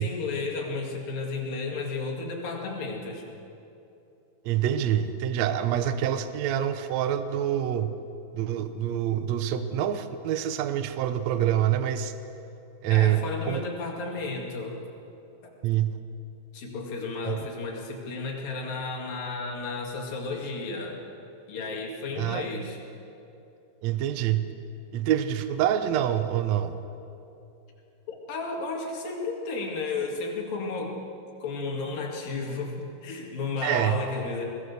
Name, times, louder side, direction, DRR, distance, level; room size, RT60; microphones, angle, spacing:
voice 1, 0.0-3.3 12.9-14.8 15.4-15.5 16.5-21.0 21.5-22.8 28.1-31.0 31.4-34.5, left 3 dB, 65° left, 0 dB, 3.9 m, -33 dB
voice 2, 4.4-7.9 8.3-12.1 12.8-13.6 15.6-16.0 17.2-17.4 22.2-22.5 23.8-24.5 24.9-26.8 33.6-34.0, right 11 dB, 85° right, 10 dB, 1.5 m, -26 dB
21.5 x 18.0 x 7.0 m, 2.8 s
omnidirectional pair, 4.3 m